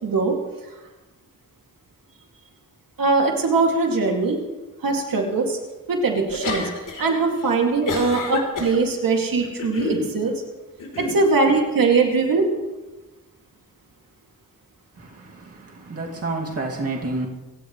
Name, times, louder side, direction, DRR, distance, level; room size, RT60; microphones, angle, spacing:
voice 1, 0.0-0.3 3.0-4.4 4.8-5.6 5.9-6.6 7.0-10.3 11.0-12.5, right 4 dB, 80° right, 2.5 m, -21 dB
sound 1, 6.3-7.1 7.4-8.8 9.4-10.1 10.8-11.2, left 3 dB, 70° left, 3.7 m, -28 dB
voice 2, 15.0-17.3, right 2 dB, 45° right, 2.4 m, -29 dB
26.5 x 16.5 x 3.2 m
wide cardioid pair, 130°, 33 cm